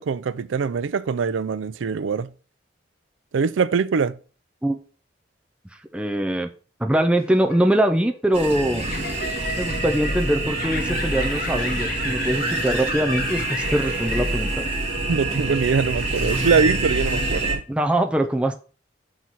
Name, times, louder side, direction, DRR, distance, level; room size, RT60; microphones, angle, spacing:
voice 1, 0.0-2.3 3.3-4.2 15.1-17.6, right 5 dB, 90° right, 0.4 m, -23 dB
voice 2, 5.9-6.5 6.8-8.9 9.6-14.6 17.7-18.5, right 1 dB, 5° right, 0.5 m, -22 dB
sound 1, 7.1-14.7, left 3 dB, 50° left, 1.3 m, -33 dB
sound 2, 8.3-17.5, right 2 dB, 30° right, 2.0 m, -26 dB
5.7 x 4.0 x 4.6 m
head